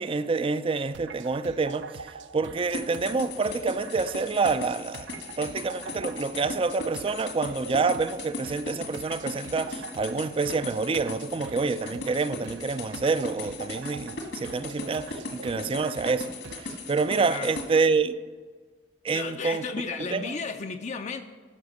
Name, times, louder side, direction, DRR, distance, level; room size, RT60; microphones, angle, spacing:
voice 1, 0.0-5.1 5.4-16.3 16.6-18.1 19.0-19.6 20.1-20.4, right 4 dB, 30° right, 0.4 m, -27 dB
sound 1, 0.9-16.8, right 3 dB, 85° right, 0.5 m, -44 dB
sound 2, 2.7-17.7, left 2 dB, 75° left, 1.7 m, -38 dB
voice 2, 17.3-17.6 19.1-21.2, left 4 dB, 40° left, 0.5 m, -33 dB
12.0 x 5.2 x 6.4 m
head